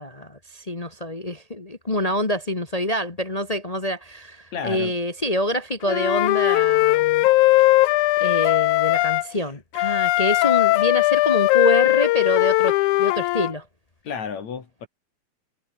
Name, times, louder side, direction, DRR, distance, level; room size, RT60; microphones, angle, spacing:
voice 1, 0.0-7.3 7.6-7.7 8.2-13.6, left 1 dB, 35° left, 0.6 m, -26 dB
voice 2, 4.5-5.0 14.0-14.9, left 6 dB, 65° left, 4.3 m, -31 dB
Wind instrument woodwind instrument, 5.9-9.2 9.7-13.5, left 19 dB, 90° left, 2.1 m, -19 dB
omnidirectional pair, 3.4 m